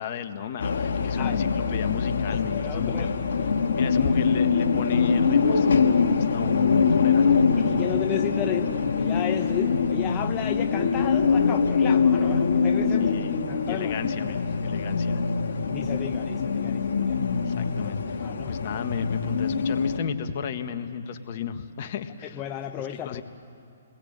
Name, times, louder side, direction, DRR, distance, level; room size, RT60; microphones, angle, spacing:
voice 1, 0.0-3.2 3.7-7.9 13.0-15.2 17.4-22.4 22.8-23.2, left 8 dB, 50° left, 8 dB, 1.6 m, -34 dB
sound 1, 0.6-20.0, left 5 dB, 65° left, 2.1 m, -24 dB
voice 2, 2.5-3.6 7.6-13.1 13.5-14.0 15.7-17.2 18.2-18.6 22.3-23.2, left 11 dB, 25° left, 5 dB, 0.8 m, -33 dB
30.0 x 21.0 x 8.8 m, 2.7 s
hypercardioid pair, 135°, 0 cm